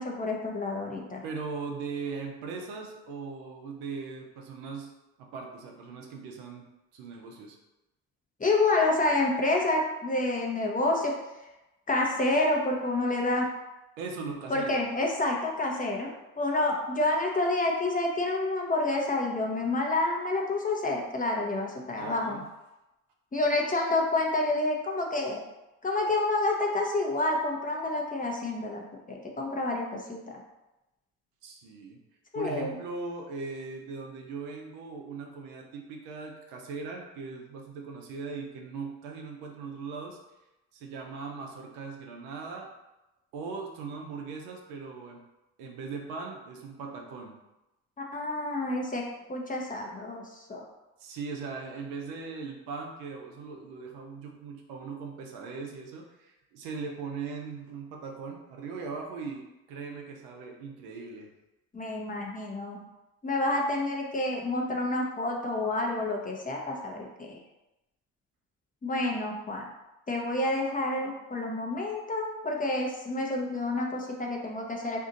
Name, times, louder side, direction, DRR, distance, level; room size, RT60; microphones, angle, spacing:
voice 1, 0.0-1.2 8.4-11.1 11.9-13.5 14.5-22.4 23.3-25.4 25.8-28.8 29.1-30.4 32.3-32.7 48.1-49.0 49.3-50.6 61.7-62.8 63.2-67.4 68.8-69.7 70.1-75.1, left 2 dB, 20° left, 0 dB, 0.7 m, -28 dB
voice 2, 1.2-4.9 5.2-6.6 6.9-7.6 14.0-14.8 22.0-22.4 31.4-32.0 32.3-40.2 40.7-42.7 43.3-45.2 45.6-47.3 51.0-61.3, right 4 dB, 75° right, 1 dB, 0.7 m, -39 dB
2.7 x 2.4 x 3.9 m, 0.96 s
hypercardioid pair, 60°, 42 cm